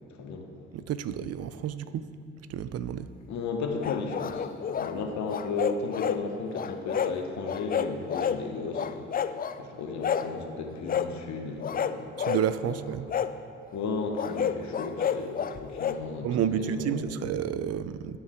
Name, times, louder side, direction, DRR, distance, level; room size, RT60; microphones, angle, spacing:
voice 1, 0.7-2.1 2.5-3.1 12.2-13.1 16.2-18.2, right 9 dB, 55° right, 13 dB, 0.5 m, -30 dB
voice 2, 3.2-4.5 4.7-12.1 12.6-12.8 13.7-17.0, left 4 dB, 65° left, 3 dB, 1.1 m, -34 dB
sound 1, 3.8-4.9 5.3-6.2 6.5-7.1 7.4-8.4 8.7-9.6 10.0-10.3 10.9-11.1 11.6-12.4 13.1-13.3 14.1-16.0, left 8 dB, 30° left, 0.4 m, -30 dB
13.0 x 4.6 x 3.6 m, 2.5 s
supercardioid pair, 60°, 30 cm